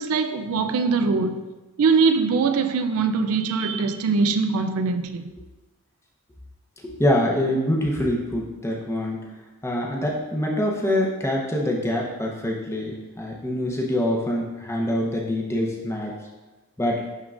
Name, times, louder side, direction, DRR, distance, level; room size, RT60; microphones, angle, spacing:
voice 1, 0.0-1.4 1.8-5.3, right 4 dB, 75° right, 0.4 m, -22 dB
voice 2, 6.8-9.2 9.6-16.1 16.8-17.0, left 1 dB, 10° left, 0.7 m, -25 dB
11.0 x 3.7 x 2.4 m
head